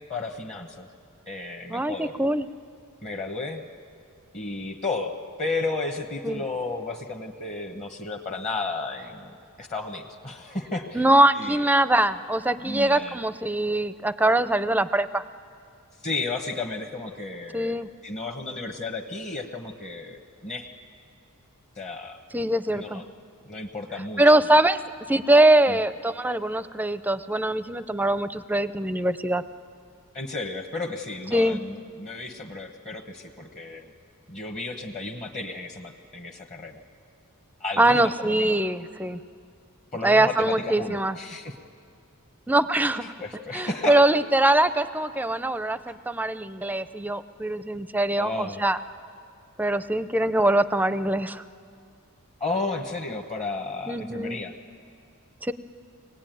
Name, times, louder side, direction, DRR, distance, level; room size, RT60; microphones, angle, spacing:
voice 1, 0.1-0.9 1.3-2.1 3.0-3.6 4.3-9.3 9.6-11.1 11.3-11.6 12.6-13.2 16.0-17.7 18.0-20.7 21.8-22.2 22.7-23.0 23.4-24.2 25.7-25.8 30.1-33.9 34.3-36.8 37.6-38.6 39.9-41.5 43.2-44.0 48.2-48.6 52.4-54.5, left 3 dB, 30° left, 2 dB, 1.1 m, -33 dB
voice 2, 1.7-2.5 6.2-6.4 10.9-15.2 17.5-17.9 22.3-23.0 24.2-24.8 25.1-29.4 31.3-31.6 37.8-39.2 40.0-41.2 42.5-43.1 43.5-48.8 49.6-51.4 53.9-54.4 55.4-55.5, right 1 dB, 10° right, 13 dB, 0.5 m, -22 dB
24.5 x 19.5 x 9.2 m, 2.3 s
head